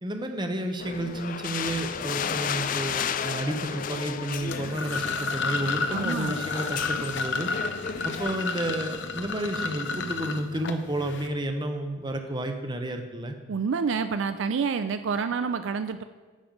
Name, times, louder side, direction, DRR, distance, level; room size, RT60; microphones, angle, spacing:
voice 1, 0.0-7.5 8.0-13.4, right 1 dB, 20° right, 6 dB, 0.8 m, -31 dB
sound 1, 0.8-8.4, left 7 dB, 40° left, 0.3 m, -33 dB
sound 2, 4.4-11.3, left 4 dB, 55° left, 0.7 m, -31 dB
voice 2, 5.9-6.3 13.5-16.0, right 5 dB, 65° right, 10 dB, 0.4 m, -28 dB
10.5 x 7.0 x 5.2 m, 1.4 s
head